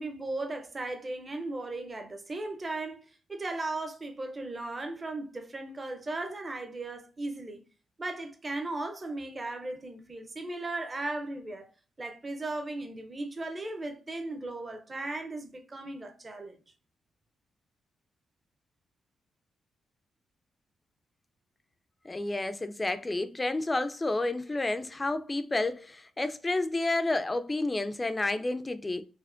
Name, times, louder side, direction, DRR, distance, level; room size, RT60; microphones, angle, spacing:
voice 1, 0.0-7.6 8.0-11.7 12.0-16.6, right 2 dB, 35° right, 0.6 m, -37 dB
voice 2, 22.1-29.0, left 2 dB, 25° left, 0.4 m, -30 dB
4.2 x 2.1 x 2.5 m
supercardioid pair, 55°, 0 cm